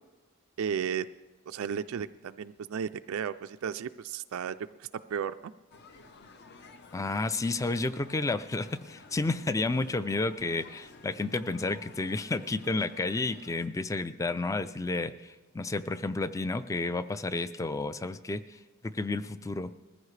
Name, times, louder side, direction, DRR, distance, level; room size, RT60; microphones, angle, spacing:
voice 1, 0.6-1.1 1.5-5.5, right 7 dB, 70° right, 10 dB, 0.3 m, -34 dB
sound 1, 5.7-13.7, left 3 dB, 50° left, 0.7 m, -53 dB
voice 2, 6.9-18.6 18.9-19.7, left 3 dB, 15° left, 14 dB, 0.3 m, -31 dB
21.0 x 14.5 x 3.2 m, 1.3 s
head